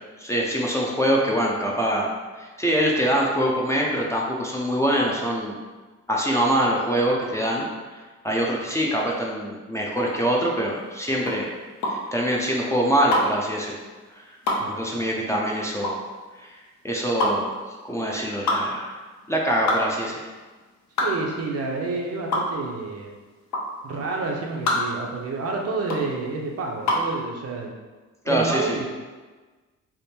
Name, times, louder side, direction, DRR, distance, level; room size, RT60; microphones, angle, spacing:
voice 1, 0.2-2.1 2.4-5.6 6.1-11.5 11.8-13.8 14.2-14.3 14.7-16.0 16.4-16.5 16.8-17.5 17.8-19.0 19.3-20.2 28.3-28.8, equal, 10° left, -3 dB, 0.5 m, -24 dB
sound 1, 9.9-27.2, left 1 dB, 65° left, 0.8 m, -27 dB
voice 2, 14.6-15.1 21.0-23.1 23.8-27.7 28.3-28.9, right 3 dB, 55° right, 0 dB, 0.7 m, -29 dB
3.5 x 2.1 x 4.2 m, 1.3 s
cardioid pair, 90°, 30 cm